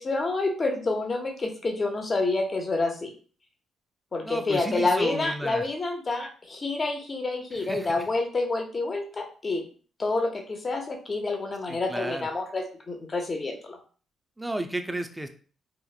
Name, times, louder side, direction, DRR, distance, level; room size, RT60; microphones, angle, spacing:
voice 1, 0.0-3.1 4.1-9.6 10.0-13.8, left 3 dB, 40° left, 3 dB, 0.6 m, -28 dB
voice 2, 4.2-5.7 7.5-8.1 11.7-12.3 14.4-15.3, right 1 dB, 10° right, 7 dB, 0.4 m, -33 dB
2.9 x 2.0 x 2.3 m, 0.41 s
supercardioid pair, 60°, 0 cm